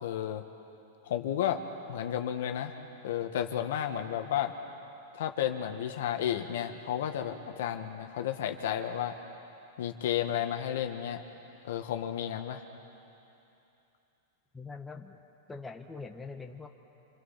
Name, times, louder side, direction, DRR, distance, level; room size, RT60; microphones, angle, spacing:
voice 1, 0.0-0.4 1.0-1.6 1.9-2.8 3.0-4.5 5.1-9.1 9.8-11.2 11.6-12.6, left 10 dB, 75° left, 5 dB, 1.7 m, -32 dB
voice 2, 14.5-15.2 15.5-16.7, left 4 dB, 10° left, 3 dB, 1.5 m, -43 dB
27.0 x 26.0 x 5.9 m, 2.9 s
hypercardioid pair, 130°, 0 cm